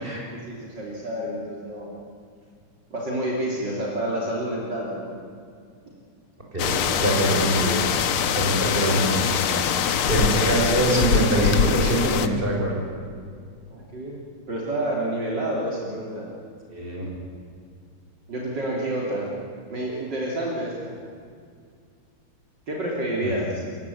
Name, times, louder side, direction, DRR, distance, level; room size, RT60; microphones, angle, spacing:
voice 1, 0.0-1.9 2.9-5.2 13.7-14.2 14.5-16.3 18.3-19.3 19.7-21.0 22.7-23.6, right 1 dB, 55° right, -3 dB, 3.8 m, -29 dB
voice 2, 6.5-7.8 8.3-9.1 9.4-9.5 10.1-12.8 16.7-17.1 23.2-23.4, right 1 dB, 25° right, -2 dB, 6.2 m, -23 dB
sound 1, 6.6-12.3, left 8 dB, 85° left, 2.0 m, -23 dB
28.0 x 16.0 x 8.7 m, 2.2 s
omnidirectional pair, 2.3 m